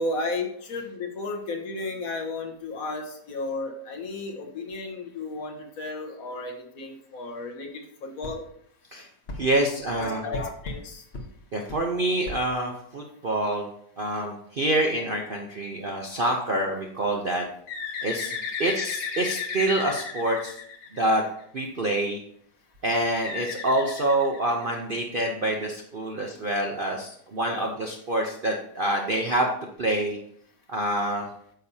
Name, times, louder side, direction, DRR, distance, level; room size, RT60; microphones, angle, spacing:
voice 1, 0.0-7.7 8.0-8.4 9.9-11.0 27.4-27.7, left 2 dB, 60° left, 2 dB, 1.4 m, -33 dB
sound 1, 8.2-8.4 9.3-9.4 10.3-10.8 11.1-11.3 11.7-11.8 12.2-12.4, left 2 dB, 40° left, 1.2 m, -36 dB
voice 2, 9.3-10.2 11.5-13.7 14.0-17.5 18.0-20.5 20.9-21.2 21.5-22.2 22.8-29.5 29.8-30.2 30.7-31.3, right 1 dB, 45° right, 1 dB, 0.7 m, -26 dB
Bird, 17.7-21.4 23.2-24.9, left 6 dB, 85° left, 1.6 m, -34 dB
9.2 x 6.8 x 2.8 m, 0.67 s
omnidirectional pair, 1.8 m